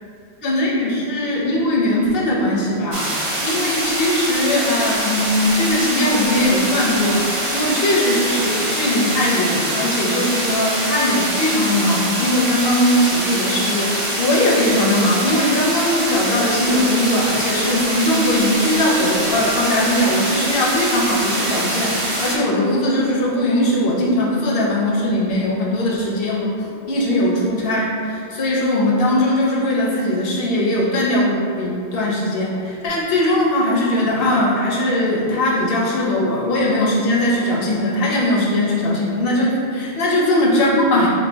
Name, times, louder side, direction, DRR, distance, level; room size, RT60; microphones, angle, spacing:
voice 1, 0.4-26.5 26.9-41.1, left 1 dB, 60° left, -4 dB, 0.9 m, -19 dB
sound 1, 2.9-22.4, right 1 dB, 40° right, 0.5 m, -24 dB
4.3 x 2.3 x 3.4 m, 2.5 s
omnidirectional pair, 1.1 m